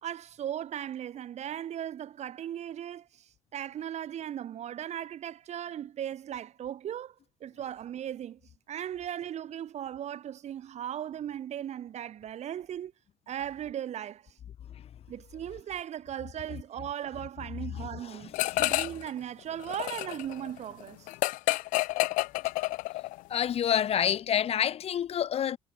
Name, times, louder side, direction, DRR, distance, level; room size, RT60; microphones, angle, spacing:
voice 1, 0.0-7.1 7.4-8.4 8.7-12.9 13.3-14.4 15.1-21.1, right 10 dB, 55° right, 1.6 m, -37 dB
voice 2, 17.8-18.5 23.3-25.6, left 9 dB, 50° left, 0.7 m, -28 dB
sound 1, 18.3-19.1 19.4-23.2, left 20 dB, 80° left, 0.4 m, -29 dB
cardioid pair, 90°, 14 cm